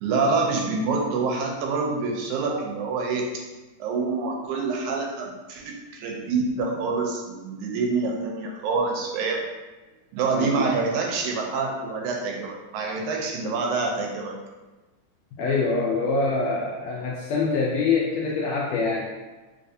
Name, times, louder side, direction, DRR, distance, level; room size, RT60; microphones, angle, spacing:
voice 1, 0.0-3.3 3.8-9.4 10.1-14.4, right 4 dB, 85° right, 0 dB, 2.0 m, -26 dB
voice 2, 10.3-10.7 15.4-19.0, left 4 dB, 80° left, -3 dB, 1.6 m, -25 dB
4.6 x 2.5 x 2.6 m, 1.2 s
omnidirectional pair, 3.4 m